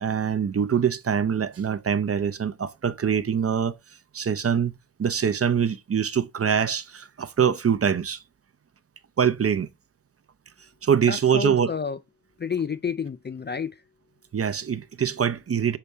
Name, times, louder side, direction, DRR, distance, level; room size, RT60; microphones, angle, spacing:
voice 1, 0.0-3.8 4.1-8.2 9.2-9.7 10.8-11.7 14.3-15.8, right 7 dB, 40° right, 0.6 m, -24 dB
voice 2, 11.1-12.0 12.4-13.8, left 6 dB, 30° left, 0.4 m, -30 dB
6.8 x 4.2 x 3.4 m
wide cardioid pair, 95°, 38 cm